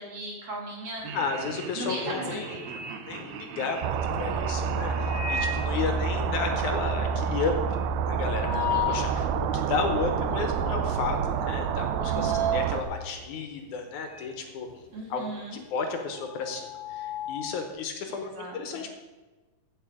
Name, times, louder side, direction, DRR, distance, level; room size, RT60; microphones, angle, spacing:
voice 1, 0.0-1.1 1.8-2.8 3.5-3.7 8.5-9.2 12.1-12.6 14.9-15.6 18.1-18.9, right 1 dB, 50° right, -2 dB, 2.8 m, -37 dB
sound 1, 1.0-1.4 1.8-3.9 4.8-5.8 6.2-6.3 6.5-6.6 7.0-9.1 9.6-9.7 10.5-10.8 11.1-14.4 14.7-17.6, left 1 dB, 15° right, 2.3 m, -34 dB
Laughter, 1.0-7.2, right 7 dB, 70° right, 1.7 m, -42 dB
voice 2, 1.1-2.6 3.1-7.5 8.1-14.7 15.1-18.9, left 5 dB, 70° left, 5 dB, 2.3 m, -33 dB
sound 2, 3.8-12.8, right 6 dB, 90° right, 2.2 m, -28 dB
14.5 x 6.0 x 4.9 m, 1.2 s
omnidirectional pair, 3.8 m